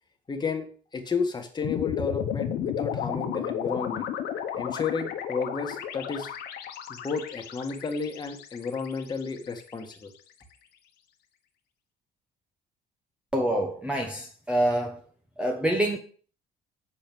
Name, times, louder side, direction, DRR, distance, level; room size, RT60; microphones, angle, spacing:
voice 1, 0.3-0.7 0.9-4.1 4.6-6.3 6.9-10.1, left 5 dB, 25° left, 1.7 m, -32 dB
sound 1, 1.6-9.9, left 9 dB, 75° left, 1.2 m, -33 dB
voice 2, 13.3-15.0 15.4-16.0, right 1 dB, 5° right, 1.1 m, -26 dB
7.0 x 5.3 x 6.2 m
cardioid pair, 110°, 17 cm